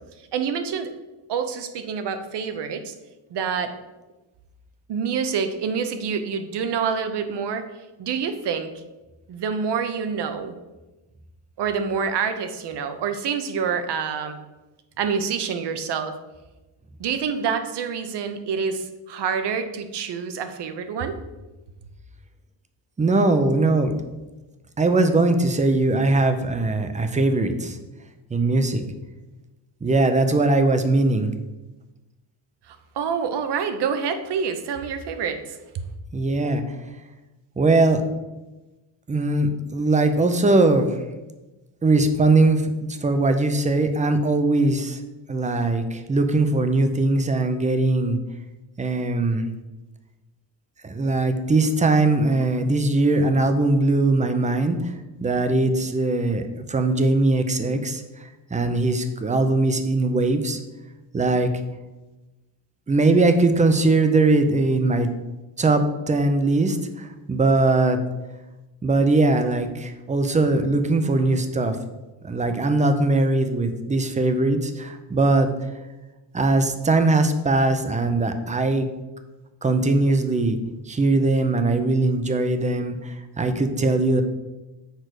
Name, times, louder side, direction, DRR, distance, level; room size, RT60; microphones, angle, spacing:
voice 1, 0.3-0.9 1.3-2.9 3.3-3.7 4.9-7.7 8.0-8.7 9.3-10.5 11.6-14.4 15.0-16.2 17.0-21.2 32.7-35.9, right 6 dB, 60° right, 9 dB, 0.9 m, -27 dB
voice 2, 23.0-23.9 24.8-27.8 28.3-28.8 29.8-31.3 36.1-36.6 37.6-38.0 39.1-41.0 41.8-45.0 45.3-48.2 48.8-49.5 50.8-54.9 55.2-60.6 61.1-61.5 62.9-65.1 65.6-68.0 68.8-71.8 72.2-75.5 76.3-78.9 79.6-80.6 80.9-84.2, right 2 dB, 15° right, 8 dB, 0.5 m, -20 dB
6.7 x 4.7 x 6.3 m, 1.1 s
cardioid pair, 160°, 46 cm